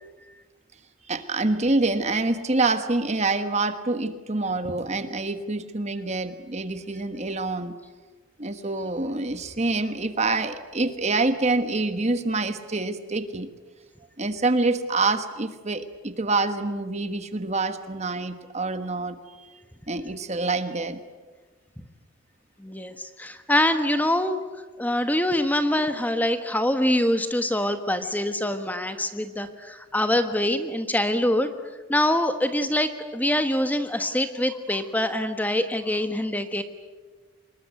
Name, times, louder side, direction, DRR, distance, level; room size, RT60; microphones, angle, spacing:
voice 1, 1.1-7.8 8.4-13.5 14.2-19.5 19.9-21.0, right 3 dB, 30° right, 10 dB, 1.3 m, -26 dB
voice 2, 22.6-24.4 24.8-31.5 31.9-36.6, left 1 dB, 10° left, 8 dB, 1.2 m, -24 dB
25.5 x 21.5 x 9.3 m, 1.3 s
head